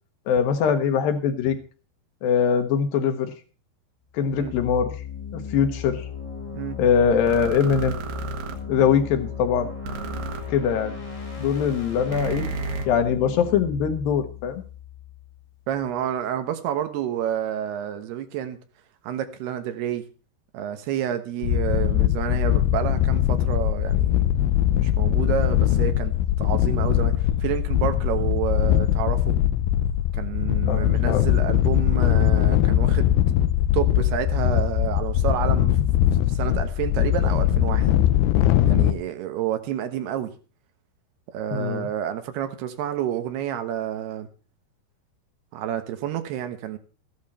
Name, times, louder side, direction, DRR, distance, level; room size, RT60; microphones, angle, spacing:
voice 1, 0.3-1.6 2.2-3.3 4.1-4.9 5.3-6.0 6.8-8.0 8.7-9.7 10.5-10.9 11.4-12.5 12.9-14.6 30.7-31.3 41.5-41.9, left 7 dB, 70° left, 8 dB, 2.9 m, -22 dB
sound 1, 4.2-16.0, left 6 dB, 25° left, 0.8 m, -36 dB
sound 2, 7.3-8.6 9.8-10.4 12.1-12.9, right 5 dB, 65° right, 3.2 m, -32 dB
voice 2, 15.7-18.6 19.0-20.0 20.5-24.4 24.7-26.1 26.4-29.4 30.2-33.1 33.7-35.8 36.3-37.9 38.7-40.3 41.3-44.3 45.5-46.8, right 10 dB, 80° right, 8 dB, 3.2 m, -29 dB
sound 3, 21.4-38.9, left 12 dB, 90° left, 2.9 m, -21 dB
14.5 x 11.5 x 4.3 m, 0.36 s
omnidirectional pair, 4.6 m